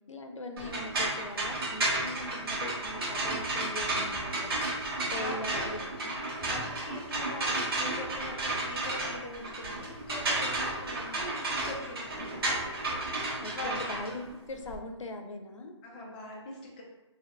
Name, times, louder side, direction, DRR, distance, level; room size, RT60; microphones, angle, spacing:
voice 1, 0.1-4.6 5.1-6.2 12.2-12.5 13.4-15.8, left 2 dB, 90° left, 5 dB, 0.6 m, -41 dB
sound 1, 0.6-14.8, right 2 dB, 50° right, 1.1 m, -32 dB
voice 2, 3.9-5.9 6.4-12.6 12.9-14.2 15.8-16.8, left 2 dB, 15° left, -3 dB, 0.5 m, -43 dB
3.6 x 2.7 x 2.2 m, 1.1 s
hypercardioid pair, 160°, 16 cm